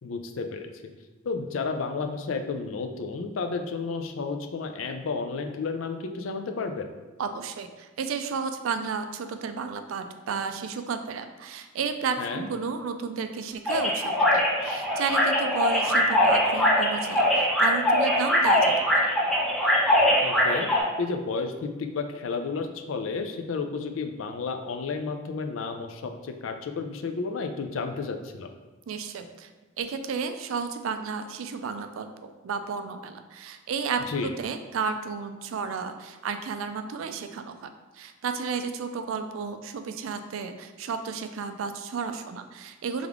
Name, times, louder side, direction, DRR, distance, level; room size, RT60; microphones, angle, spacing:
voice 1, 0.0-0.9 1.2-6.9 12.2-12.5 20.2-20.7 21.0-28.5 34.1-34.3, left 4 dB, 70° left, 6 dB, 0.4 m, -32 dB
voice 2, 7.2-19.1 28.9-29.5 29.8-43.1, right 5 dB, 80° right, 8 dB, 0.4 m, -32 dB
sound 1, 13.7-20.8, equal, ahead, 0.7 m, -22 dB
3.5 x 3.5 x 3.5 m, 1.2 s
head